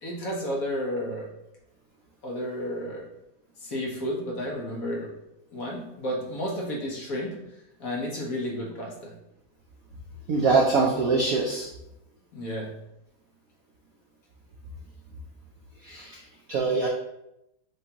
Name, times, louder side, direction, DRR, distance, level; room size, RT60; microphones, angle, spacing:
voice 1, 0.0-1.3 2.2-3.0 3.6-5.1 5.5-7.4 7.8-9.1 12.3-12.7, equal, 55° left, -3 dB, 1.2 m, -32 dB
voice 2, 10.3-11.7 15.8-16.2 16.5-16.9, right 4 dB, 75° right, 0 dB, 0.8 m, -23 dB
6.7 x 2.6 x 2.8 m, 0.84 s
omnidirectional pair, 2.1 m